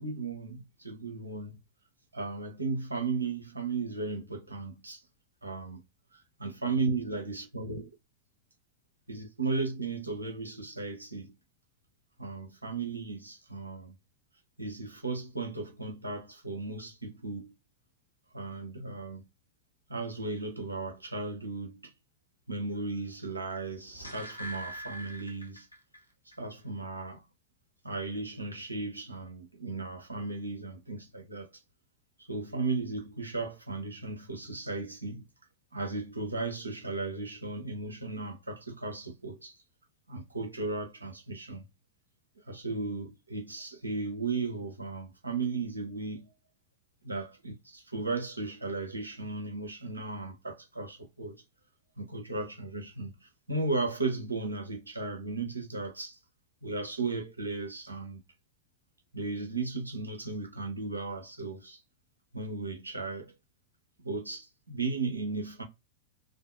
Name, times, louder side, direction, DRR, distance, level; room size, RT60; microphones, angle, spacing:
voice 1, 0.0-1.6 2.1-5.0 5.4-5.8 6.4-7.9 9.1-11.3 12.2-13.9 14.6-17.5 18.3-19.3 19.9-21.9 22.5-25.7 26.4-27.2 27.8-31.5 32.2-35.2 35.7-39.6 40.1-41.6 42.4-46.3 47.0-51.4 52.0-56.2 56.6-58.2 59.1-61.8 62.3-63.3 64.0-65.6, right 3 dB, 80° right, 0.7 m, -35 dB
sound 1, 23.6-26.0 26.3-26.4, right 1 dB, 85° left, 0.7 m, -43 dB
2.6 x 2.3 x 2.5 m
figure-of-eight pair, 90°, 0 cm